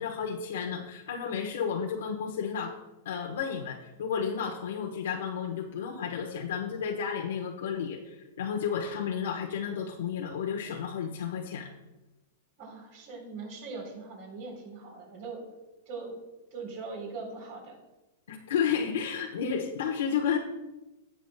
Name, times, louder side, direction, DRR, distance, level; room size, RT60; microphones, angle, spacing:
voice 1, 0.0-2.7 3.0-11.7 18.3-20.4, left 7 dB, 80° left, 0 dB, 1.0 m, -32 dB
voice 2, 12.6-15.4 15.9-16.2 16.5-17.8, right 4 dB, 45° right, 0 dB, 3.5 m, -41 dB
17.5 x 7.0 x 2.2 m, 1.0 s
supercardioid pair, 165°, 0 cm